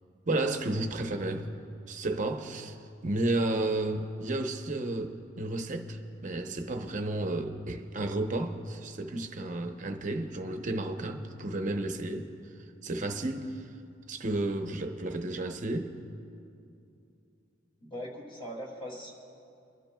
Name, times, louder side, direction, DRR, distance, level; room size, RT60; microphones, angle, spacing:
voice 1, 0.3-1.5 1.9-2.8 3.0-12.3 12.8-13.6 14.1-15.9, right 2 dB, 40° right, 0.8 m, -32 dB
voice 2, 17.8-19.1, equal, 30° left, 2.4 m, -40 dB
29.5 x 12.0 x 2.3 m
head